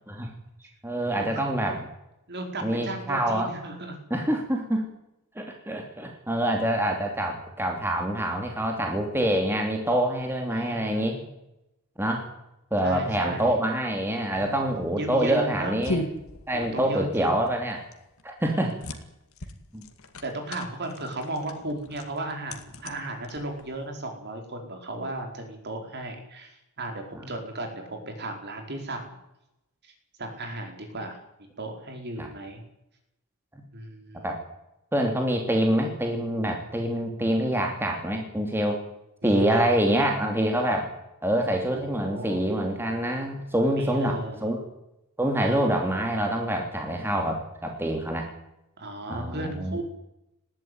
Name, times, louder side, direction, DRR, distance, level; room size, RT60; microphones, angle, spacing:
voice 1, 0.8-1.9 2.6-3.5 4.1-4.9 5.3-11.2 12.0-12.3 12.7-16.0 16.5-17.8 18.2-18.7 19.7-19.8 27.1-27.3 32.2-32.3 33.5-33.6 34.2-34.4 34.9-38.8 39.2-40.9 41.2-44.6 45.2-48.3 49.1-49.8, right 1 dB, 10° right, 2 dB, 2.9 m, -26 dB
voice 2, 2.3-3.9 10.5-11.3 12.8-13.5 14.3-14.6 15.0-15.7 16.5-17.3 18.4-18.7 20.2-29.1 29.8-29.9 30.2-31.2 31.6-32.6 33.7-34.3 39.2-39.7 41.7-42.4 43.7-44.4 45.4-45.7 48.8-49.8, right 1 dB, 50° right, 4 dB, 4.9 m, -35 dB
sound 1, 14.3-23.9, left 1 dB, 65° left, 2.3 m, -38 dB
19.5 x 15.0 x 9.6 m, 0.87 s
head